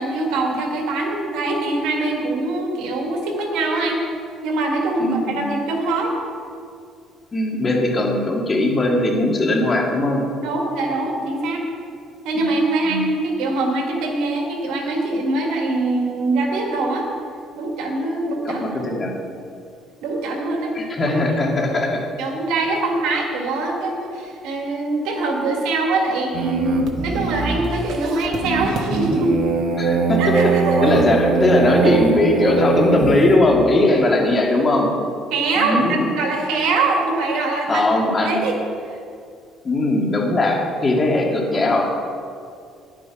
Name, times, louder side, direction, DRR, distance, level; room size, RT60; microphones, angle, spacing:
voice 1, 0.0-4.0 4.4-6.1 10.4-11.6 12.2-17.1 17.6-18.8 20.0-20.7 21.0-21.1 22.2-29.4 30.2-31.0 31.8-32.2 35.3-37.8 38.2-38.6, right 2 dB, 85° right, 1 dB, 2.0 m, -23 dB
voice 2, 5.0-5.5 7.3-10.2 12.3-12.5 12.8-13.0 18.5-19.1 20.7-22.1 29.8-30.2 30.8-34.9 35.6-36.1 37.7-38.4 39.6-41.9, left 2 dB, 30° left, -1 dB, 2.0 m, -19 dB
sound 1, 26.3-33.4, right 4 dB, 60° right, 1.0 m, -22 dB
11.0 x 8.9 x 4.8 m, 2.3 s
cardioid pair, 120°, 0 cm